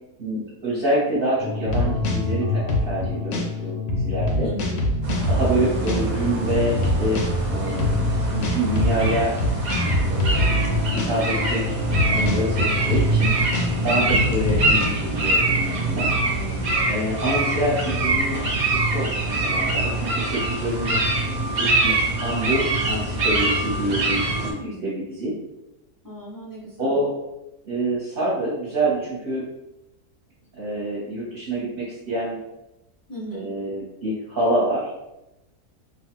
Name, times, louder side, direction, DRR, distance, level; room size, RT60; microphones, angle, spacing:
voice 1, 0.2-4.5 5.3-7.2 7.5-9.3 10.1-13.3 13.8-16.1 16.9-18.4 18.7-21.0 21.3-25.3 26.8-27.1 27.6-29.4 30.5-32.4 33.3-34.9, right 1 dB, 45° right, -8 dB, 0.9 m, -27 dB
sound 1, 1.4-14.9, left 2 dB, 90° left, 1.1 m, -25 dB
voice 2, 4.4-4.8 13.9-14.4 16.2-17.0 24.3-24.9 26.0-27.0 33.1-33.5, equal, 25° left, -7 dB, 0.4 m, -36 dB
sound 2, 5.0-24.5, right 2 dB, 65° right, 0.4 m, -24 dB
2.9 x 2.3 x 2.9 m, 0.91 s
omnidirectional pair, 1.6 m